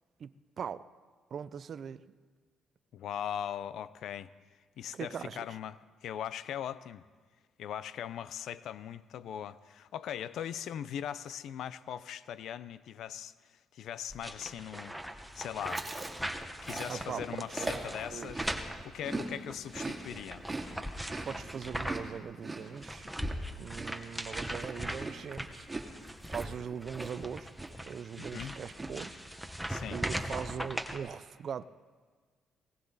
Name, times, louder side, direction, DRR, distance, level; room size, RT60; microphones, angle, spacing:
voice 1, 0.2-0.9 1.3-2.0 4.9-5.4 16.9-17.8 18.1-18.3 21.2-23.1 23.6-25.7 26.3-27.5 27.8-29.2 29.9-31.6, right 7 dB, 55° right, 16 dB, 0.6 m, -40 dB
voice 2, 2.9-4.3 4.8-7.0 7.6-13.3 13.7-15.0 15.4-15.9 16.6-18.5 18.8-20.4 28.2-28.5 29.7-30.0, left 9 dB, 75° left, 16 dB, 0.5 m, -40 dB
sound 1, 14.1-22.2 22.5-31.0, equal, ahead, 1.3 m, -40 dB
Chewing mastication, 15.6-19.3 19.6-27.3 27.6-27.9 28.2-28.9, right 2 dB, 20° right, 2.4 m, -41 dB
19.5 x 18.0 x 4.1 m, 1.5 s
cardioid pair, 90°, 0 cm